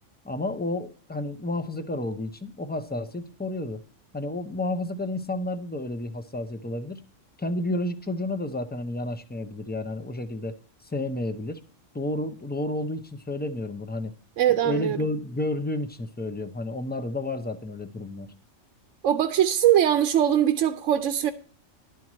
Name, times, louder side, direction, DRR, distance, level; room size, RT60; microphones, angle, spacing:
voice 1, 0.2-3.8 4.1-7.0 7.4-10.5 10.8-11.6 11.9-14.1 14.5-18.3, left 2 dB, 10° left, 0.5 m, -31 dB
voice 2, 14.4-15.0 19.0-21.3, right 10 dB, 80° right, 1.0 m, -21 dB
12.0 x 4.7 x 7.3 m
omnidirectional pair, 1.3 m